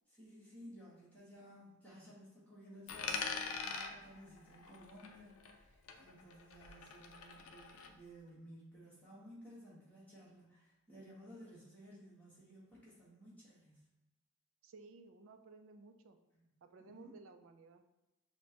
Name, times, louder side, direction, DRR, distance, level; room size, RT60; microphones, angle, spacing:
voice 1, 0.1-13.9 16.3-16.5 16.8-17.1, equal, 5° left, -8 dB, 1.2 m, -56 dB
Coin (dropping), 2.9-5.6 5.9-7.9, left 5 dB, 90° left, 0.5 m, -44 dB
voice 2, 14.6-16.2 16.6-17.8, right 3 dB, 70° right, 7 dB, 0.4 m, -57 dB
6.2 x 2.1 x 2.8 m, 0.98 s
head